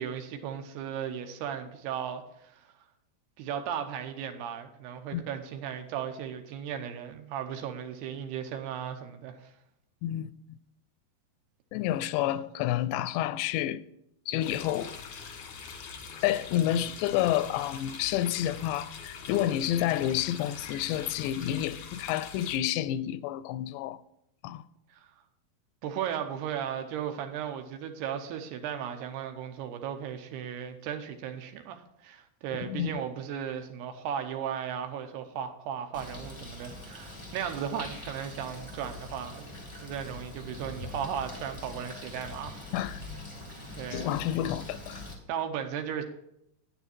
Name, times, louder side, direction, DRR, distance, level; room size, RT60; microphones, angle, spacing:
voice 1, 0.0-2.7 3.4-9.5 24.9-25.1 25.8-39.5 39.8-42.9 43.8-44.2 45.3-46.0, right 8 dB, 75° right, 2.8 m, -36 dB
voice 2, 10.0-10.6 11.7-13.8 14.3-15.0 16.2-24.0 24.4-24.6 32.6-32.9 42.7-43.0 43.9-45.0, left 12 dB, 85° left, 2.8 m, -29 dB
sound 1, 14.4-22.6, left 6 dB, 65° left, 1.8 m, -43 dB
Bird, 35.9-45.1, left 2 dB, 50° left, 0.3 m, -43 dB
9.8 x 9.6 x 4.4 m
omnidirectional pair, 5.0 m